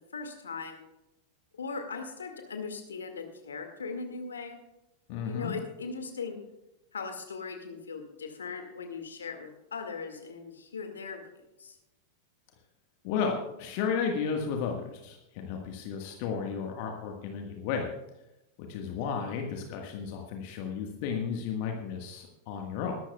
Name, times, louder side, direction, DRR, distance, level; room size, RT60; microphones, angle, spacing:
voice 1, 0.1-0.8 1.5-4.6 5.3-6.4 6.9-11.2 11.6-11.7, left 5 dB, 70° left, 5 dB, 2.1 m, -39 dB
voice 2, 5.1-5.5 13.0-17.9 18.7-22.9, left 6 dB, 45° left, 2 dB, 1.6 m, -33 dB
20.5 x 12.5 x 2.4 m, 0.94 s
figure-of-eight pair, 90°, 0 cm